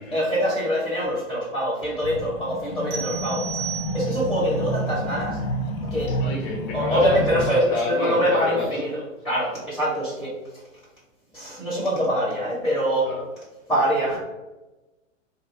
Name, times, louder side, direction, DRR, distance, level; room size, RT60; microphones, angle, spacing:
voice 1, 0.1-3.4 3.9-5.4 5.9-6.1 6.7-8.9 9.2-10.3 11.3-13.1 13.7-14.2, equal, ahead, -8 dB, 1.2 m, -24 dB
sound 1, 2.0-7.5, equal, 80° left, 0.7 m, -29 dB
sound 2, 2.9-4.4, right 8 dB, 50° right, 0.9 m, -34 dB
voice 2, 6.1-8.8 13.0-13.2, left 3 dB, 30° left, -2 dB, 0.9 m, -29 dB
2.8 x 2.3 x 4.1 m, 1.1 s
hypercardioid pair, 120°, 39 cm